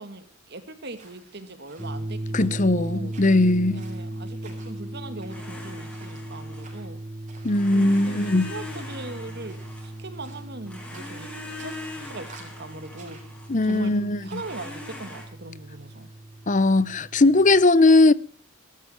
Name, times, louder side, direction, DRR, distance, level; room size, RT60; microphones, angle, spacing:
voice 1, 0.0-3.1 3.7-7.0 7.7-11.8 12.0-13.2 13.7-16.1, right 2 dB, 55° right, 2.5 m, -40 dB
sound 1, 0.9-14.7, right 3 dB, 40° right, 7.2 m, -54 dB
sound 2, 1.8-17.6, right 1 dB, 10° right, 1.8 m, -37 dB
voice 2, 2.3-3.8 7.4-8.5 13.5-14.4 16.5-18.1, left 2 dB, 40° left, 0.7 m, -19 dB
Domestic sounds home sounds, 5.3-6.9 7.5-10.3 10.6-13.7 14.3-15.2, left 2 dB, 5° left, 6.8 m, -41 dB
21.0 x 13.0 x 4.7 m
head